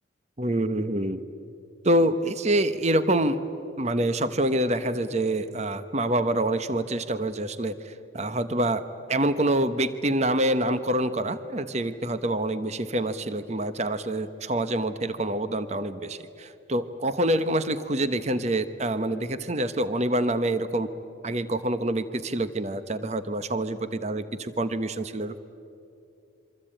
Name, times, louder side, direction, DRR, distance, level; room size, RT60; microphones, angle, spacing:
voice 1, 0.4-1.2 1.8-3.4 3.8-8.8 9.1-20.9 21.2-25.4, right 1 dB, 35° right, 11 dB, 1.0 m, -26 dB
27.0 x 24.5 x 8.9 m, 2.6 s
head